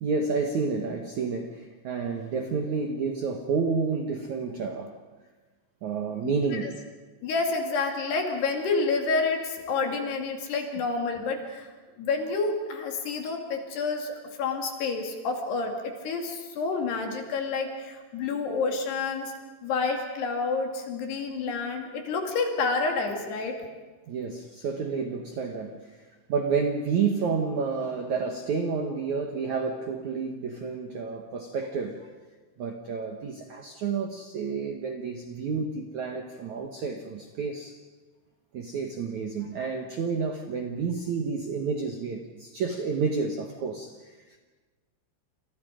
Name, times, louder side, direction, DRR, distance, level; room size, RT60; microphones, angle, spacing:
voice 1, 0.0-5.0 5.8-6.8 24.1-32.1 32.6-37.8 38.5-44.4, right 5 dB, 80° right, 4 dB, 1.6 m, -30 dB
voice 2, 6.2-6.7 7.2-11.7 12.0-19.3 19.6-23.6, left 4 dB, 60° left, 3 dB, 4.2 m, -29 dB
29.0 x 28.0 x 5.1 m, 1.3 s
omnidirectional pair, 5.7 m